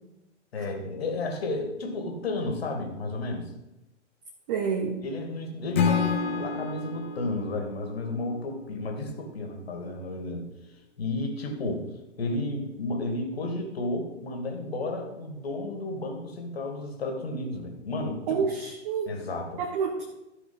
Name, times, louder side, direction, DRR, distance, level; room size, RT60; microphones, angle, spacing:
voice 1, 0.5-3.5 5.0-10.5 11.0-11.9 12.2-18.5 19.1-19.6, left 2 dB, 55° left, 3 dB, 2.4 m, -32 dB
voice 2, 4.5-5.0 18.3-19.1 19.6-20.0, right 6 dB, 35° right, 1 dB, 1.4 m, -28 dB
Acoustic guitar / Strum, 5.7-8.9, left 6 dB, 10° left, 0.3 m, -29 dB
14.0 x 4.9 x 5.6 m, 0.94 s
figure-of-eight pair, 110°, 36 cm